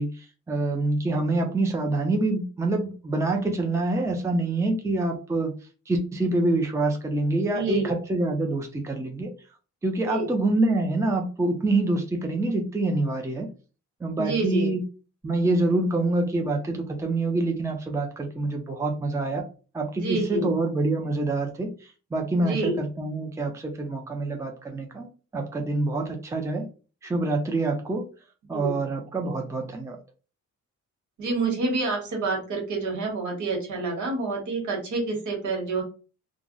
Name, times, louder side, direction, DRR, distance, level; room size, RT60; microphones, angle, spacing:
voice 1, 0.0-5.5 5.9-9.3 9.8-13.5 14.0-14.8 15.2-19.4 19.7-21.7 22.1-25.1 25.3-26.7 27.0-28.0 28.5-30.0, right 2 dB, 10° right, 3 dB, 0.4 m, -26 dB
voice 2, 7.4-7.9 10.0-10.3 14.2-14.7 19.9-20.5 22.4-22.8 28.4-28.8 31.2-35.8, right 3 dB, 80° right, 1 dB, 1.3 m, -28 dB
2.5 x 2.0 x 3.7 m, 0.35 s
cardioid pair, 140°, 30 cm